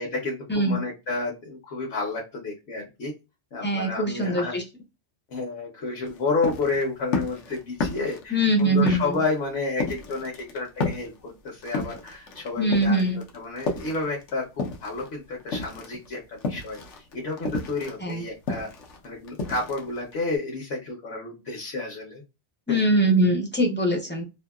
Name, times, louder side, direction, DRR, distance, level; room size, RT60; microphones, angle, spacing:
voice 1, 0.0-3.1 3.5-4.5 5.3-13.0 13.3-18.7 19.0-22.2 22.7-22.9, left 3 dB, 65° left, -1 dB, 1.0 m, -31 dB
voice 2, 3.6-4.6 8.3-9.2 12.6-13.2 18.0-18.2 22.7-24.2, right 1 dB, 15° left, 1 dB, 0.5 m, -22 dB
sound 1, 6.0-15.1 15.4-20.4, left 3 dB, 85° left, 1.1 m, -32 dB
2.7 x 2.6 x 2.3 m, 0.26 s
omnidirectional pair, 1.2 m